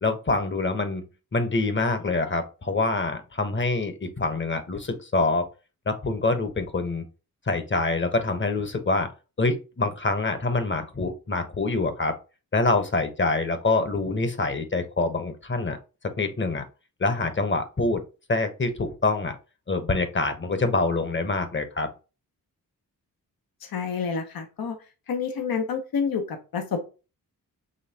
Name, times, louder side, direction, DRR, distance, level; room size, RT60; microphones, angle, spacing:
voice 1, 0.0-1.0 1.3-5.5 5.9-7.0 7.5-9.1 9.4-12.1 12.5-15.8 16.2-16.6 17.0-18.0 18.3-19.4 19.7-21.9, left 3 dB, 30° left, 8 dB, 1.0 m, -25 dB
voice 2, 23.6-24.8 25.1-26.8, left 6 dB, 75° left, 5 dB, 1.0 m, -28 dB
5.4 x 3.4 x 2.8 m, 0.31 s
cardioid pair, 80°, 36 cm